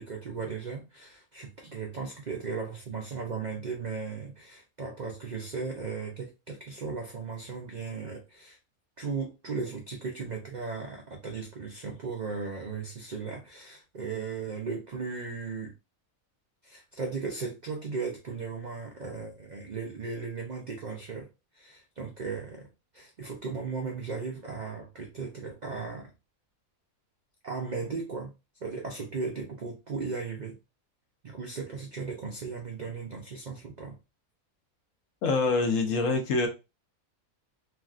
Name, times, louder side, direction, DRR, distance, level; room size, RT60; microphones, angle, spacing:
voice 1, 0.0-8.6 9.0-15.7 16.6-21.3 21.5-22.7 22.9-26.1 27.4-28.3 28.6-30.5 31.2-33.9, right 4 dB, 70° right, 0.4 m, -36 dB
voice 2, 35.2-36.5, left 3 dB, 70° left, 1.0 m, -25 dB
3.4 x 2.3 x 2.4 m
omnidirectional pair, 1.5 m